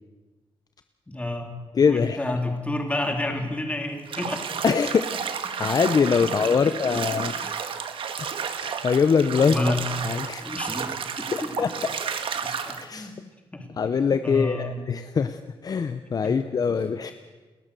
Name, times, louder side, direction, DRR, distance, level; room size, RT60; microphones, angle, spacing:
voice 1, 1.1-4.4 5.6-5.8 6.2-6.7 7.1-7.7 9.4-9.8 10.4-11.7 12.4-13.1 13.5-13.7 14.2-14.8 16.2-16.4 16.7-16.8, left 1 dB, 15° left, 3 dB, 3.2 m, -31 dB
voice 2, 1.7-2.2 4.6-5.1 5.6-7.4 8.2-8.3 8.6-9.7 10.0-10.5 11.3-11.7 12.8-13.1 13.8-17.1, left 6 dB, 45° left, 10 dB, 0.8 m, -23 dB
Bathtub (filling or washing), 4.1-12.8, right 7 dB, 70° right, 1.6 m, -32 dB
29.5 x 13.5 x 6.8 m, 1.3 s
wide cardioid pair, 125°, 9 cm